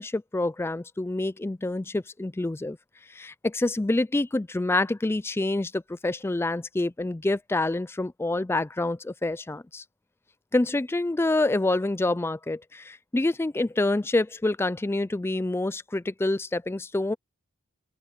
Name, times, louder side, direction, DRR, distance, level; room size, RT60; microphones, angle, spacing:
voice 1, 0.0-2.8 3.1-9.8 10.5-17.1, left 2 dB, 10° left, 0.3 m, -27 dB
open air
head